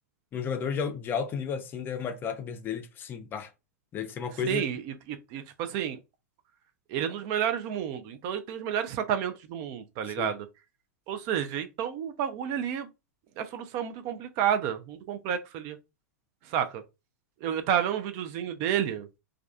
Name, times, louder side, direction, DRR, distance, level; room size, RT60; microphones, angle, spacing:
voice 1, 0.3-3.5 3.9-4.7 10.2-10.3, left 7 dB, 25° left, 0.4 m, -33 dB
voice 2, 4.5-6.0 6.9-10.5 11.1-12.9 13.4-15.8 16.4-16.8 17.4-19.1, right 9 dB, 40° right, 0.3 m, -30 dB
2.3 x 2.3 x 2.3 m
hypercardioid pair, 105°, 8 cm